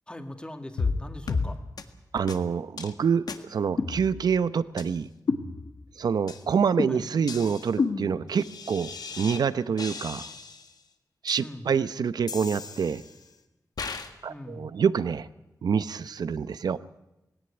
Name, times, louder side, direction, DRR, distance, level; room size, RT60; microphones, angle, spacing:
voice 1, 0.1-1.6 6.9-7.0 11.4-11.7 14.3-14.7, left 1 dB, 15° left, 5 dB, 2.2 m, -41 dB
sound 1, 0.8-1.0 1.3-1.5 1.8-1.9 2.3-2.4 2.8-2.9 3.3-3.4 3.8-4.4 4.8-4.9 5.3-5.9 6.3-6.4 6.8-9.4 9.8-10.7 11.3-11.4 12.3-13.2 13.8-14.1, left 4 dB, 75° left, 1.7 m, -32 dB
voice 2, 2.1-3.2 3.5-5.1 6.0-10.3 11.2-13.0 14.2-15.3 15.6-16.8, right 6 dB, 80° right, 14 dB, 0.8 m, -26 dB
18.0 x 17.5 x 9.8 m, 0.95 s
wide cardioid pair, 85°, 7 cm